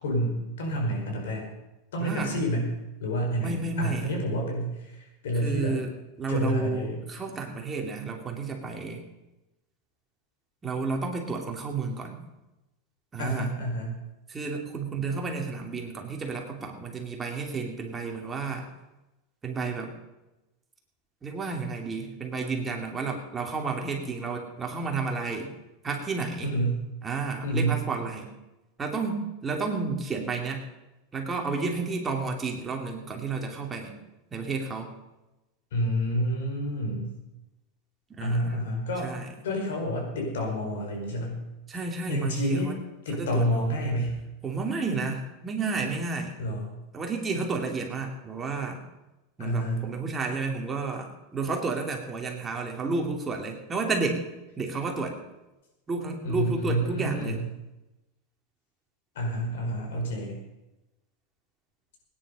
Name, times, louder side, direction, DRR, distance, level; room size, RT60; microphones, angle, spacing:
voice 1, 0.0-1.5 1.9-2.7 3.0-5.8 6.3-7.0 13.2-14.0 26.4-26.8 27.4-27.8 35.7-37.2 38.2-39.2 39.4-41.4 42.1-42.7 43.1-44.2 46.4-46.7 49.4-49.9 56.2-57.5 59.2-60.4, equal, 85° left, 1 dB, 5.2 m, -29 dB
voice 2, 2.0-2.3 3.3-4.1 5.4-5.9 6.2-9.0 10.6-12.2 13.1-13.5 14.3-18.7 19.4-20.0 21.2-25.5 25.8-26.5 27.0-28.3 28.8-30.6 31.1-33.9 34.3-34.9 38.1-38.6 39.0-39.3 41.7-42.7 43.1-43.6 44.4-46.3 46.9-48.8 49.4-54.2 54.6-55.2 55.9-57.4, right 4 dB, 20° right, 1 dB, 2.7 m, -31 dB
18.0 x 10.0 x 5.5 m, 1.0 s
supercardioid pair, 130°, 0 cm